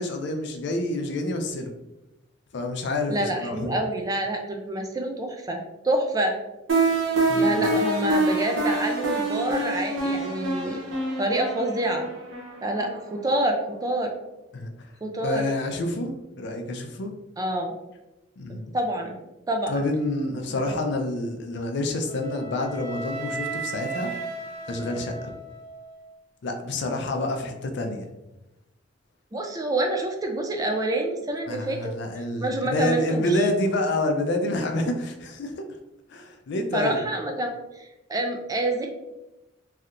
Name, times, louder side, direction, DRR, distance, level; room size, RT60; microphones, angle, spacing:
voice 1, 0.0-1.7 2.5-3.7 7.3-7.6 14.5-14.7 15.2-16.1 16.4-17.1 18.4-18.7 19.7-24.1 24.7-25.3 26.4-28.1 31.5-35.6 36.1-37.0, left 1 dB, 60° left, 5 dB, 0.4 m, -28 dB
voice 2, 3.1-5.6 5.8-6.3 7.3-10.8 11.2-12.1 12.6-14.1 15.0-15.5 17.4-17.7 18.7-19.1 19.5-19.8 20.5-20.6 29.3-31.9 32.4-33.4 36.7-37.5 37.8-38.9, right 1 dB, 20° right, 3 dB, 0.4 m, -27 dB
sound 1, 6.7-13.5, right 2 dB, 85° right, 0.8 m, -26 dB
Wind instrument woodwind instrument, 22.1-26.1, right 3 dB, 35° left, 0.8 m, -35 dB
3.2 x 2.7 x 2.5 m, 0.97 s
head